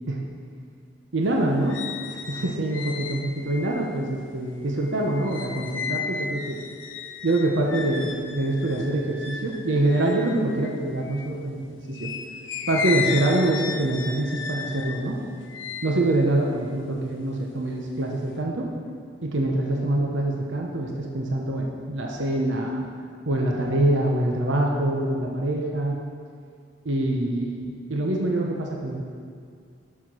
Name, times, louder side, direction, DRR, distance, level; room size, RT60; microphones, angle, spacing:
voice 1, 1.1-1.7 2.3-6.6 7.2-12.1 12.7-15.2 15.8-18.7 19.2-22.8 23.3-26.0 26.8-29.0, right 1 dB, 80° right, 0 dB, 0.9 m, -25 dB
sound 1, 1.2-11.4 11.9-17.4 17.8-18.4, left 6 dB, 85° left, 0.8 m, -35 dB
7.4 x 6.0 x 6.2 m, 2.3 s
head